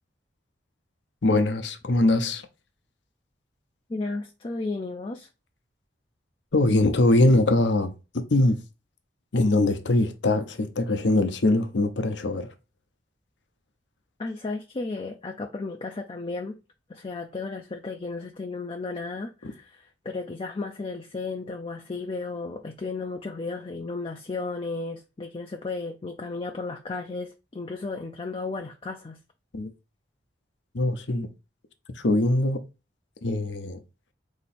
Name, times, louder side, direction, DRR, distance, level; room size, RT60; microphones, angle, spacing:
voice 1, 1.2-2.5 6.5-7.9 8.3-8.6 9.3-12.5 19.4-19.5 29.5-29.7 30.7-31.3 31.9-32.6 33.2-33.8, left 2 dB, 80° left, 0.7 m, -22 dB
voice 2, 3.9-5.3 14.2-16.6 16.9-29.2, left 3 dB, 30° left, 0.4 m, -34 dB
4.0 x 2.9 x 4.2 m
head